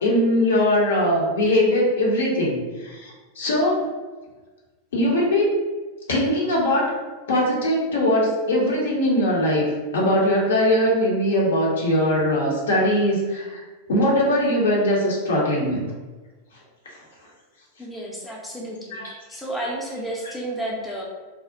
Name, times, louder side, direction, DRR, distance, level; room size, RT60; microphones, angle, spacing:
voice 1, 0.0-3.9 4.9-5.5 6.1-6.9 7.3-13.6 13.9-15.8 16.9-17.0 18.9-19.1, left 1 dB, 65° left, -3 dB, 0.6 m, -21 dB
voice 2, 17.8-18.8 19.3-21.0, right 1 dB, 5° left, -4 dB, 0.5 m, -31 dB
2.4 x 2.0 x 2.5 m, 1.3 s
figure-of-eight pair, 90°, 0 cm